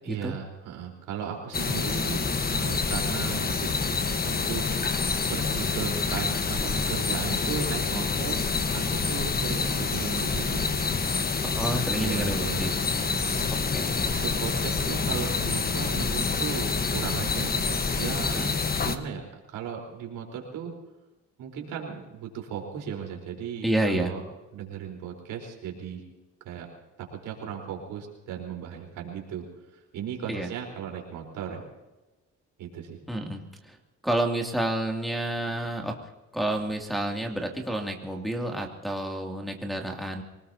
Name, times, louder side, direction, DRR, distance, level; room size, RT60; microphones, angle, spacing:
voice 1, 0.0-4.6 5.3-8.4 8.7-10.7 12.0-12.6 13.0-13.4 14.1-18.4 18.8-20.7 21.4-24.2 24.5-26.0 26.4-26.7 27.0-29.4 29.7-31.6 32.6-33.0, right 7 dB, 90° right, 1 dB, 4.4 m, -36 dB
sound 1, 1.5-19.0, left 4 dB, 30° left, 1.4 m, -27 dB
voice 2, 11.4-12.7 13.5-14.2 18.3-18.5 23.6-24.1 30.3-30.5 33.1-33.8 34.0-36.0 36.3-40.2, right 1 dB, ahead, 0 dB, 2.7 m, -29 dB
25.5 x 19.0 x 2.9 m, 1.1 s
cardioid pair, 90°, 30 cm